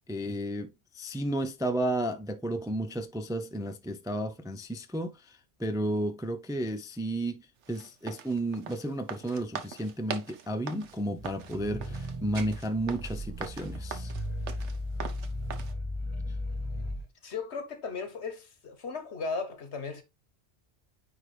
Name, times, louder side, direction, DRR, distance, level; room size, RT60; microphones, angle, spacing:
voice 1, 0.1-7.4 7.7-14.1, right 1 dB, 5° right, 0.4 m, -33 dB
sound 1, 7.6-15.7, right 7 dB, 85° right, 1.2 m, -42 dB
sound 2, 10.9-17.1, left 1 dB, 25° right, 2.0 m, -36 dB
voice 2, 17.2-20.0, left 4 dB, 75° left, 1.5 m, -36 dB
9.4 x 3.5 x 3.2 m
omnidirectional pair, 1.2 m